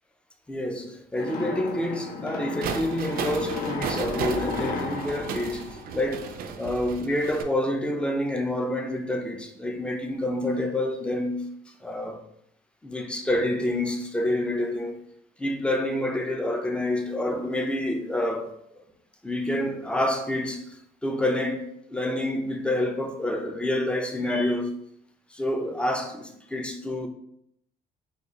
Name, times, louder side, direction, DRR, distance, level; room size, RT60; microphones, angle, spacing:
voice 1, 0.5-5.7 5.9-11.5 11.8-12.2 12.8-15.0 15.4-18.8 19.2-20.7 21.0-24.8 25.3-27.1, left 1 dB, 5° left, 0.4 m, -28 dB
sound 1, 1.2-6.5, left 4 dB, 60° left, 0.6 m, -34 dB
sound 2, 2.6-7.4, right 7 dB, 60° right, 0.4 m, -34 dB
3.7 x 2.3 x 3.0 m
cardioid pair, 110°, 17 cm